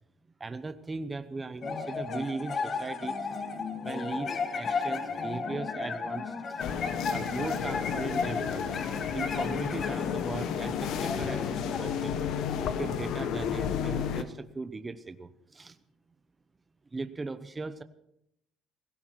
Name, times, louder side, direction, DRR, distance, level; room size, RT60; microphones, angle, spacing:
voice 1, 0.4-3.2 3.8-6.6 7.1-8.7 9.1-12.2 12.8-15.7 16.9-17.8, right 3 dB, 20° right, 11 dB, 0.9 m, -38 dB
sound 1, 1.6-13.2, left 5 dB, 35° left, 1.5 m, -35 dB
sound 2, 6.6-14.2, left 8 dB, 65° left, 1.2 m, -32 dB
17.0 x 16.5 x 4.7 m, 0.79 s
cardioid pair, 130°, 0 cm